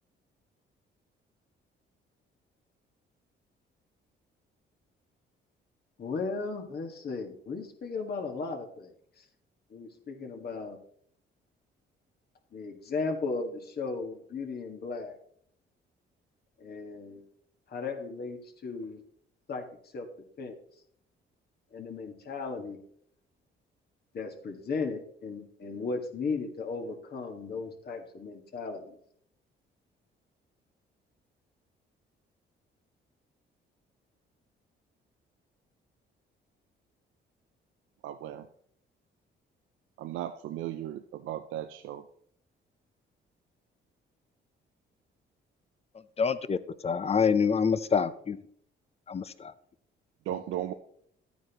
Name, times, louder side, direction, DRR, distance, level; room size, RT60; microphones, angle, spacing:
voice 1, 6.0-9.2 9.7-10.8 12.5-15.2 16.6-17.2 17.7-19.0 19.5-19.6 19.9-20.1 20.4-20.6 21.7-22.8 24.1-29.0, left 4 dB, 55° left, 3 dB, 1.9 m, -36 dB
voice 2, 38.0-38.4 40.0-42.0 50.3-50.7, right 12 dB, 85° right, 9 dB, 0.5 m, -36 dB
voice 3, 46.2-46.6 46.8-48.4 49.1-49.5, left 6 dB, 30° left, 13 dB, 0.7 m, -26 dB
12.0 x 9.2 x 3.1 m, 0.65 s
cardioid pair, 90°, 20 cm